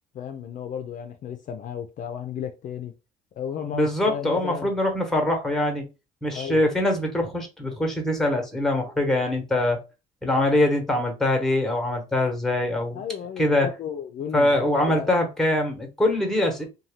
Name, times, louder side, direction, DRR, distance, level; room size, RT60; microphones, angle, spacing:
voice 1, 0.1-2.9 3.4-4.7 6.3-6.6 12.9-15.1, left 8 dB, 50° left, 0.5 m, -34 dB
voice 2, 3.7-5.8 6.2-9.8 10.2-13.0 13.4-13.7 14.3-16.6, left 1 dB, ahead, 1.0 m, -23 dB
2.7 x 2.2 x 3.2 m
cardioid pair, 110°, 17 cm